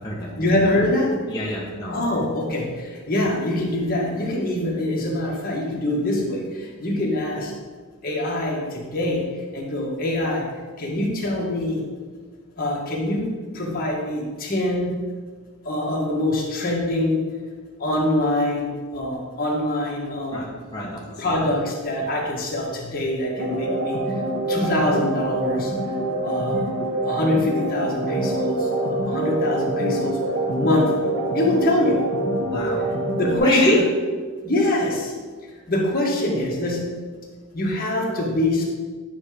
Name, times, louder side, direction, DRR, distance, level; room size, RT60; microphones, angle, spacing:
voice 1, 0.4-1.2 1.9-7.5 8.0-9.2 9.5-10.5 10.8-11.8 12.6-15.0 15.6-17.2 17.8-20.5 21.2-24.0 24.5-25.7 26.2-26.7 27.0-30.2 30.5-31.0 31.3-32.0 33.1-33.9 34.4-35.1 35.7-36.9 37.5-38.7, left 1 dB, 45° left, -3 dB, 1.5 m, -24 dB
voice 2, 1.3-2.0 20.3-21.4 22.0-22.1 32.5-32.8 33.4-33.8, left 1 dB, 20° left, -6 dB, 0.9 m, -25 dB
sound 1, 23.4-33.4, right 2 dB, 65° right, 1.3 m, -25 dB
9.4 x 3.4 x 5.0 m, 1.5 s
head